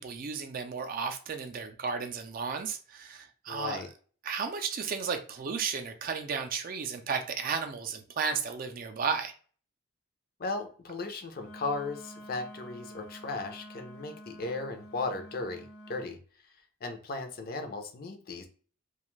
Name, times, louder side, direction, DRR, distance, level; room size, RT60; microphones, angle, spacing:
voice 1, 0.0-3.8 4.2-9.3, right 5 dB, 45° right, 0.3 m, -33 dB
voice 2, 3.5-3.9 10.4-16.2 16.8-18.5, left 3 dB, 45° left, 0.5 m, -36 dB
Wind instrument woodwind instrument, 11.3-16.1, equal, 80° left, 0.7 m, -48 dB
2.5 x 2.3 x 3.0 m
head